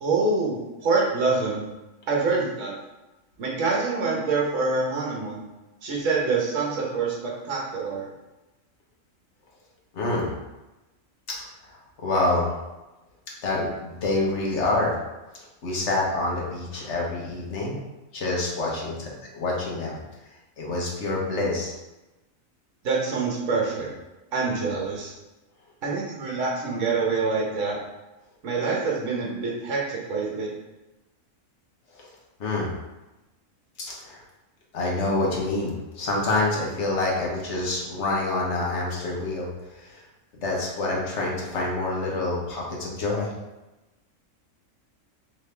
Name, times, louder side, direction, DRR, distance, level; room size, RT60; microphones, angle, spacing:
voice 1, 0.0-1.6 2.1-2.7 3.4-5.4 5.8-8.1 22.8-23.9 24.3-25.1 25.8-27.8 28.4-30.5, right 4 dB, 65° right, -3 dB, 1.3 m, -26 dB
voice 2, 9.9-10.3 11.3-11.4 11.6-11.7 12.0-12.5 13.4-15.0 15.6-17.8 18.1-20.0 20.6-21.7 31.9-32.1 32.4-32.7 33.8-34.2 34.7-39.5 39.8-40.0 40.4-43.3, left 2 dB, 60° left, -3 dB, 1.3 m, -27 dB
3.9 x 3.2 x 3.3 m, 1.0 s
omnidirectional pair, 1.4 m